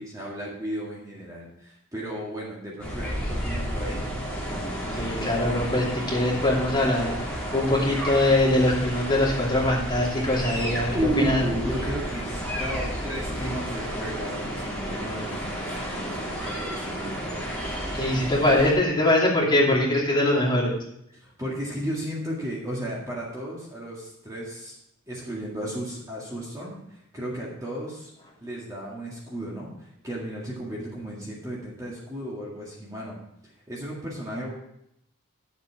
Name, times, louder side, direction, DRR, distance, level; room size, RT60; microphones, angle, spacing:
voice 1, 0.0-4.1 10.9-17.4 21.1-24.8 25.1-28.1 28.4-34.5, equal, 15° right, -5 dB, 1.9 m, -34 dB
sound 1, 2.8-18.7, equal, 5° left, 2.8 m, -32 dB
voice 2, 4.9-7.1 7.5-10.9 11.2-11.4 18.0-20.8, left 1 dB, 20° left, -5 dB, 2.7 m, -22 dB
11.0 x 7.3 x 4.7 m, 0.78 s
head